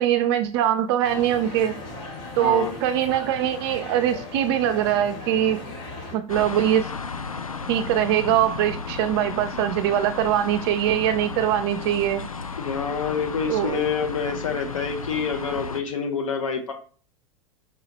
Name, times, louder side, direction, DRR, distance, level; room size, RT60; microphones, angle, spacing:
voice 1, 0.0-1.8 2.4-5.6 6.1-6.9 7.7-12.2 13.5-13.8, right 11 dB, 50° right, 0.4 m, -22 dB
sound 1, 1.0-6.2, left 2 dB, 55° left, 2.0 m, -38 dB
voice 2, 2.4-2.8 12.6-16.7, left 6 dB, 70° left, 0.8 m, -27 dB
sound 2, 6.3-15.8, left 4 dB, 90° left, 0.4 m, -34 dB
4.7 x 2.8 x 3.0 m
figure-of-eight pair, 85°, 17 cm